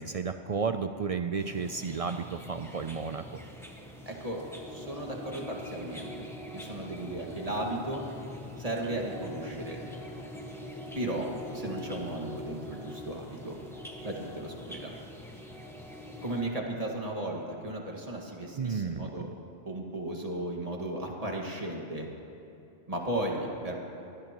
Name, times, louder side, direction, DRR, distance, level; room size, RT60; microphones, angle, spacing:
voice 1, 0.0-3.2 18.6-19.3, right 5 dB, 75° right, 8 dB, 0.3 m, -32 dB
sound 1, 1.4-16.4, left 1 dB, ahead, 1.4 m, -43 dB
voice 2, 4.1-6.3 6.5-8.1 8.6-9.9 10.9-13.6 14.0-14.9 16.2-19.3 19.6-22.1 22.9-23.7, right 1 dB, 30° right, 0 dB, 1.9 m, -35 dB
23.5 x 17.5 x 3.0 m, 2.8 s
omnidirectional pair, 1.2 m